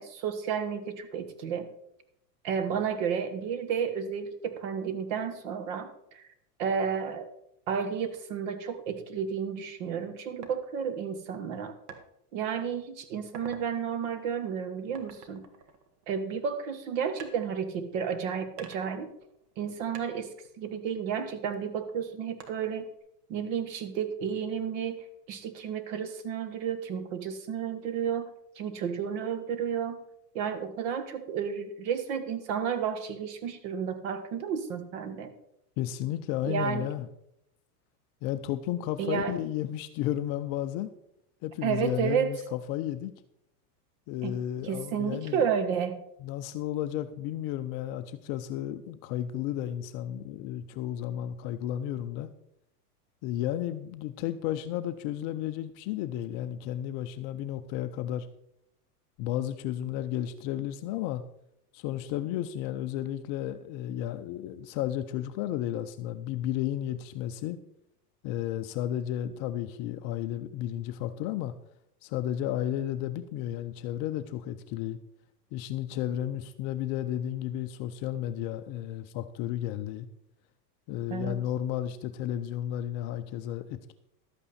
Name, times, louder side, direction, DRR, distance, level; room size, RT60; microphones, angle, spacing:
voice 1, 0.0-1.7 2.4-6.2 6.6-7.3 7.7-11.8 12.3-15.5 16.1-19.1 19.6-20.3 20.6-22.9 23.3-28.3 28.5-30.0 30.3-35.3 36.4-36.9 39.0-39.4 41.6-42.3 44.2-44.4 44.6-46.0 81.1-81.4, right 7 dB, 55° right, 10 dB, 1.6 m, -32 dB
sound 1, 10.4-10.6 11.9-12.1 12.6-12.8 13.2-13.7 14.9-16.4 17.2-18.1 18.6-19.7 19.9-21.5 22.4-23.0, right 6 dB, 70° right, 1.8 m, -48 dB
voice 2, 35.8-37.1 38.2-40.9 41.4-43.1 44.1-45.4 46.2-52.3 53.2-58.3 59.2-61.2 61.7-67.6 68.2-71.5 72.0-75.0 75.5-80.1 80.9-83.9, left 12 dB, 35° left, 9 dB, 0.5 m, -33 dB
12.0 x 8.4 x 4.2 m, 0.78 s
supercardioid pair, 135°, 48 cm